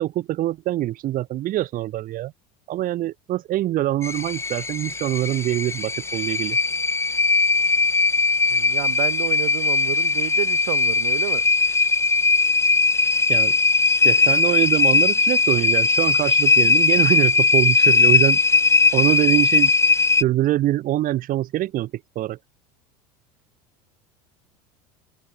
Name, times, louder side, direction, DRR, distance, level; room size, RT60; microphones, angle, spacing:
voice 1, 0.0-2.3 2.7-6.6 13.3-13.5 14.0-18.4 18.9-19.7 20.2-21.9 22.1-22.4, right 14 dB, 45° right, 1.5 m, -24 dB
sound 1, 4.0-20.2, left 3 dB, 15° left, 1.0 m, -19 dB
voice 2, 8.5-11.4, right 24 dB, 70° right, 6.3 m, -30 dB
hypercardioid pair, 80°, 19 cm